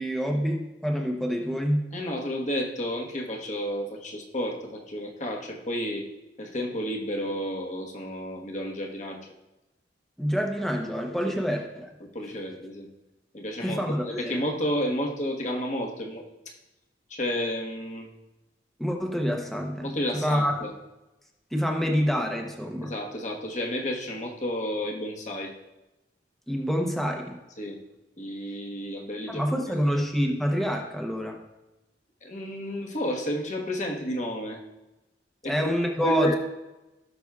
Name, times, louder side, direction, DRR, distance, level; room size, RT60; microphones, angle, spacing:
voice 1, 0.0-1.8 10.2-11.9 13.6-14.4 18.8-20.6 21.5-22.9 26.5-27.4 29.3-31.4 35.5-36.3, equal, ahead, 1 dB, 0.8 m, -27 dB
voice 2, 1.9-6.0 6.4-9.2 12.0-12.9 13.3-13.8 14.1-16.2 17.1-18.1 19.8-20.7 22.8-25.5 27.6-27.8 28.2-29.6 32.2-34.6 35.4-35.7 36.0-36.4, equal, 45° left, 0 dB, 1.3 m, -31 dB
17.5 x 6.0 x 2.4 m, 1.0 s
head